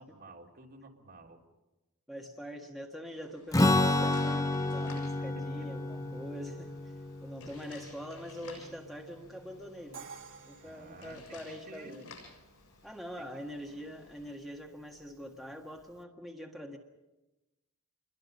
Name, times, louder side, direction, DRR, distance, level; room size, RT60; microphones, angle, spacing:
voice 1, 0.0-1.4 5.2-5.7 10.6-11.4 11.7-12.0 13.1-13.4 13.7-13.8, right 2 dB, 45° right, -1 dB, 3.4 m, -51 dB
voice 2, 2.1-6.9 7.2-10.1 10.5-12.0 12.8-16.8, equal, ahead, 1 dB, 1.6 m, -44 dB
sound 1, 3.1-14.3, left 3 dB, 85° left, 7.8 m, -55 dB
Strum, 3.5-9.1, left 2 dB, 15° left, 0.7 m, -30 dB
Crash cymbal, 9.9-11.9, right 6 dB, 60° right, 1.8 m, -50 dB
28.0 x 22.5 x 5.4 m, 1.0 s
head